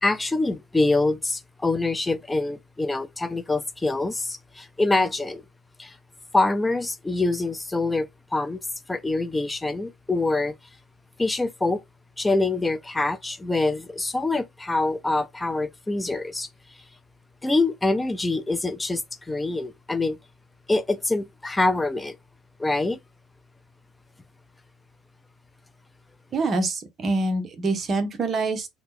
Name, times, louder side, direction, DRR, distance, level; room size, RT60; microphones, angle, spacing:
voice 1, 0.0-5.4 5.8-5.9 6.3-8.1 8.3-8.6 8.9-10.5 11.2-11.8 12.2-16.5 17.4-19.0 19.3-20.2 20.7-22.2 22.6-23.0, left 2 dB, 10° left, 0.3 m, -25 dB
voice 2, 26.3-28.7, right 3 dB, 35° right, 0.8 m, -25 dB
2.8 x 2.1 x 3.6 m
cardioid pair, 130°, 0 cm